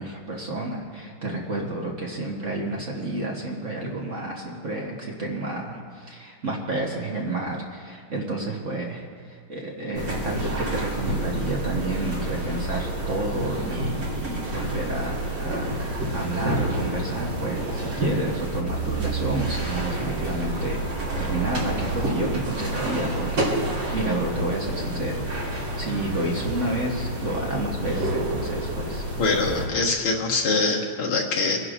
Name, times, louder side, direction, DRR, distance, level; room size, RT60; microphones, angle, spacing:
voice 1, 0.0-15.9 16.1-20.8 21.2-29.0, right 2 dB, 40° right, -2 dB, 1.2 m, -30 dB
sound 1, 9.9-29.7, right 1 dB, 60° right, 4.3 m, -29 dB
voice 2, 29.2-31.6, left 3 dB, 85° left, -1 dB, 2.4 m, -23 dB
26.0 x 11.0 x 2.5 m, 2.1 s
omnidirectional pair, 2.4 m